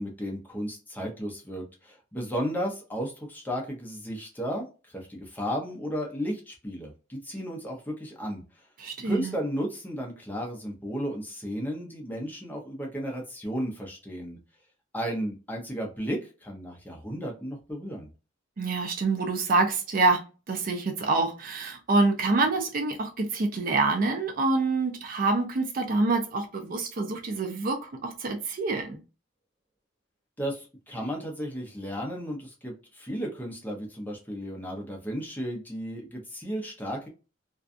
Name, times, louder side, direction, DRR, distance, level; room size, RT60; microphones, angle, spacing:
voice 1, 0.0-8.4 9.0-14.4 14.9-18.1 30.4-37.1, equal, 10° left, 0.6 m, -34 dB
voice 2, 8.8-9.3 18.6-29.0, right 3 dB, 45° right, 0.4 m, -26 dB
2.5 x 2.3 x 2.4 m
head